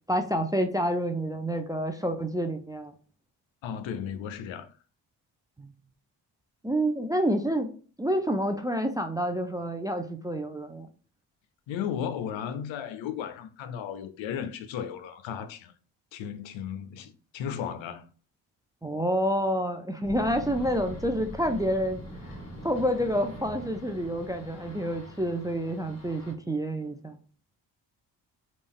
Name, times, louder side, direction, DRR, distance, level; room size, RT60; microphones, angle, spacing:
voice 1, 0.1-2.9 5.6-5.7 6.6-7.7 8.0-10.9 18.8-27.2, equal, 10° right, 0.4 m, -28 dB
voice 2, 3.6-4.7 11.7-15.7 16.1-18.1, left 8 dB, 65° left, 0.6 m, -35 dB
sound 1, 20.0-26.5, equal, 15° left, 1.2 m, -43 dB
sound 2, 20.1-26.3, left 1 dB, 30° left, 1.6 m, -51 dB
3.4 x 2.5 x 3.5 m
supercardioid pair, 50°, 49 cm